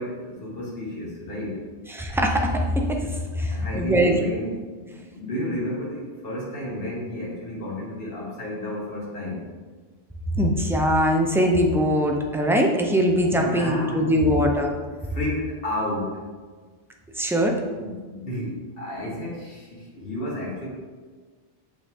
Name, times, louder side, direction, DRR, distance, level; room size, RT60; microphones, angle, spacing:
voice 1, 0.0-1.6 3.5-9.4 13.4-14.0 15.1-16.2 17.7-20.7, left 1 dB, 60° left, -5 dB, 1.9 m, -32 dB
voice 2, 1.9-4.1 10.3-14.7 17.2-17.6, equal, 5° right, 1 dB, 0.6 m, -22 dB
6.6 x 5.8 x 3.6 m, 1.4 s
omnidirectional pair, 1.1 m